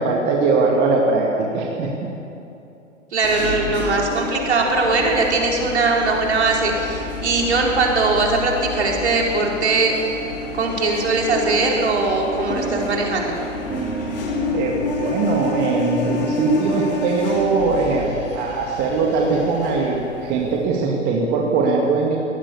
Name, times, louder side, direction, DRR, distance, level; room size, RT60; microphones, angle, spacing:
voice 1, 0.0-1.9 14.5-22.2, right 3 dB, 25° right, -1 dB, 2.3 m, -21 dB
voice 2, 3.1-9.9 10.5-13.3, right 3 dB, 60° right, -1 dB, 4.6 m, -20 dB
sound 1, 3.2-20.7, left 3 dB, 45° left, 3.4 m, -30 dB
sound 2, 11.1-17.5, right 5 dB, 10° right, 2.0 m, -32 dB
23.0 x 18.5 x 7.0 m, 2.8 s
figure-of-eight pair, 115°, 39 cm